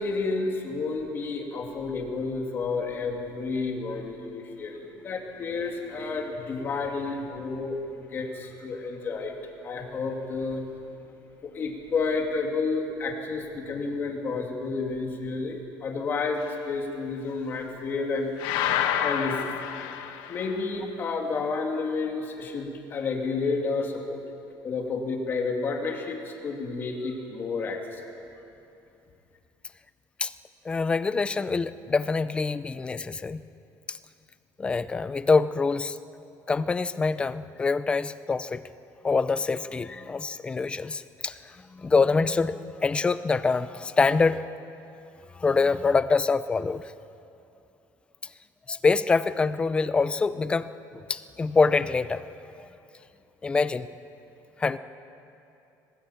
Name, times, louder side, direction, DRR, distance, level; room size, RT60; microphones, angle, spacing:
voice 1, 0.0-9.3 9.6-10.6 11.4-18.3 19.0-19.4 20.3-24.2 24.6-28.1, left 4 dB, 30° left, 1 dB, 2.9 m, -30 dB
sound 1, 18.4-20.7, left 10 dB, 85° left, 1.3 m, -28 dB
voice 2, 30.6-33.4 33.9-34.0 34.6-36.0 36.5-38.6 39.0-44.6 45.3-46.9 48.7-52.3 52.6-52.7 53.4-53.9 54.6-54.8, left 4 dB, 15° left, 14 dB, 0.5 m, -25 dB
23.0 x 19.5 x 8.9 m, 2.7 s
cardioid pair, 180°, 7 cm